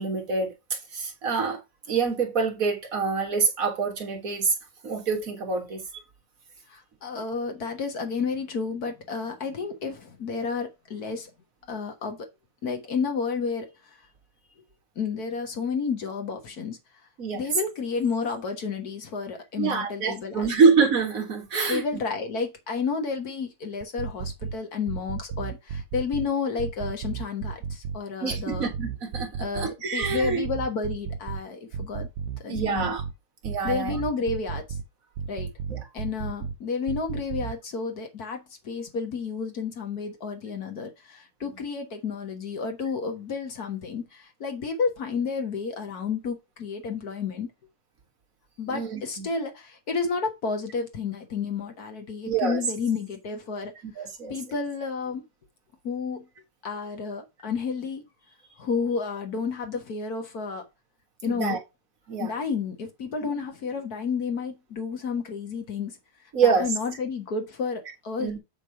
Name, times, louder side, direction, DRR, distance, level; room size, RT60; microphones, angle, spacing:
voice 1, 0.0-1.6 1.9-4.5 4.8-5.8 17.2-17.4 19.6-21.8 28.2-30.4 32.5-33.0 33.4-34.0 35.7-35.8 48.7-49.3 52.3-52.6 53.8-54.4 61.2-61.6 62.1-62.3 66.3-66.7 68.2-68.4, right 5 dB, 45° right, 1.2 m, -26 dB
voice 2, 6.7-11.3 11.7-12.3 12.6-14.1 14.9-16.8 17.3-20.5 21.7-28.7 29.4-32.1 32.4-32.9 33.6-34.8 35.3-35.5 35.9-47.5 48.6-53.7 54.0-55.2 55.8-56.3 56.6-58.0 58.5-60.6 61.2-61.6 62.2-66.0 66.4-68.3, left 5 dB, 50° left, 1.1 m, -31 dB
sound 1, 23.8-24.5 24.9-26.3 26.6-28.0 28.3-29.7 30.0-31.4 31.7-33.1 33.4-34.8 35.2-36.5 36.9-37.5, right 6 dB, 75° right, 1.6 m, -33 dB
8.2 x 3.4 x 5.6 m
omnidirectional pair, 3.4 m